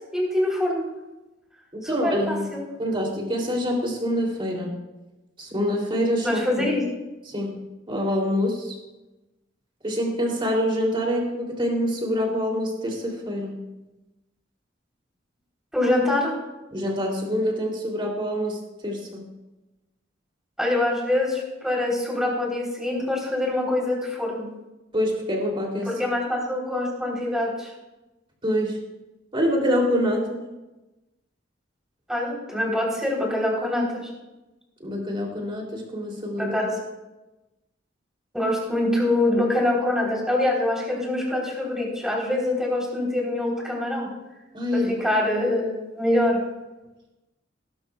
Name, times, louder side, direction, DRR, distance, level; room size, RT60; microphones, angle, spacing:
voice 1, 0.1-0.8 1.8-2.6 6.2-6.8 15.7-16.4 20.6-24.5 25.8-27.7 32.1-34.1 36.4-36.7 38.3-44.1 44.7-46.4, left 1 dB, 5° right, -3 dB, 3.4 m, -24 dB
voice 2, 1.9-2.4 2.8-4.7 5.4-6.6 7.3-8.8 9.8-13.6 16.7-19.2 24.9-25.9 28.4-28.8 29.3-30.4 34.8-36.6 44.5-45.1, equal, 25° right, 0 dB, 2.8 m, -26 dB
19.0 x 12.0 x 2.3 m, 1.0 s
head